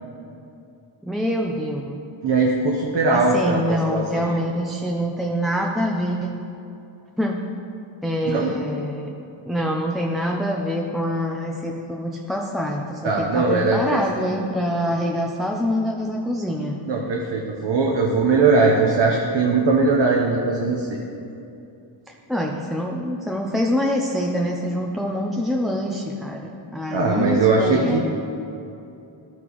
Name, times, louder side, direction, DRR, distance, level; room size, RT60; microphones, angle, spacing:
voice 1, 1.0-2.0 3.1-6.3 7.2-7.4 8.0-9.1 9.5-16.8 22.3-28.0, equal, ahead, 0 dB, 0.5 m, -25 dB
voice 2, 2.2-4.3 8.3-8.5 13.0-14.0 16.9-21.0 26.9-28.0, right 3 dB, 60° right, -1 dB, 0.9 m, -20 dB
13.0 x 6.0 x 3.0 m, 2.7 s
wide cardioid pair, 105°, 48 cm